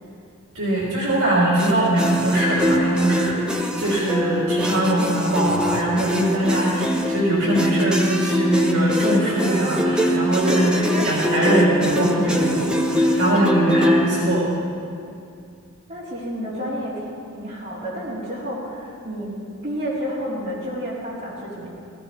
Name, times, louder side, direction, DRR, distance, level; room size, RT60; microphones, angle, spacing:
voice 1, 0.5-10.7 11.0-14.4, right 1 dB, 60° right, -7 dB, 3.2 m, -21 dB
sound 1, 1.6-14.1, equal, 5° right, 0.9 m, -23 dB
voice 2, 10.5-11.6 15.9-17.0 17.3-19.3 19.6-21.7, equal, 35° right, -9 dB, 4.3 m, -30 dB
17.5 x 15.5 x 3.5 m, 2.4 s
head